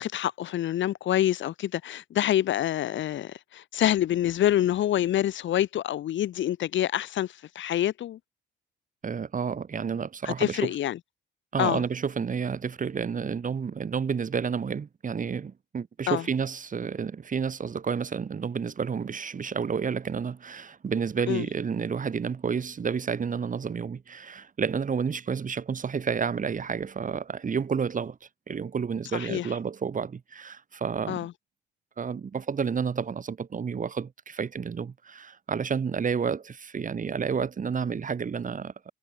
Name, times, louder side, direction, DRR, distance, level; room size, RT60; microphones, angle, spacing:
voice 1, 0.0-8.2 10.2-11.0 11.6-11.8 16.1-16.2 21.3-21.4 29.1-29.5 31.1-31.3, left 12 dB, 75° left, 2.2 m, -26 dB
voice 2, 9.0-10.7 11.5-28.2 28.5-31.3 32.0-38.7, right 6 dB, 40° right, 3.7 m, -30 dB
cardioid pair, 90°, 20 cm